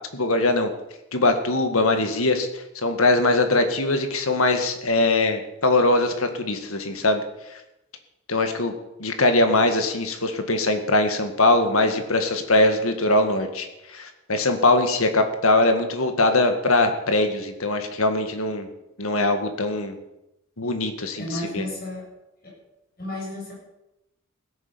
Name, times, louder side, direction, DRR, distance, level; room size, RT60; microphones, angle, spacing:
voice 1, 0.1-0.7 1.1-7.2 8.3-8.7 9.0-18.7 19.0-20.0 20.6-21.3 21.5-21.7, left 2 dB, 80° left, 7 dB, 2.0 m, -21 dB
voice 2, 21.2-22.1 22.4-22.6 23.0-23.5, left 1 dB, 45° left, -3 dB, 7.6 m, -32 dB
16.5 x 10.0 x 7.0 m, 0.91 s
head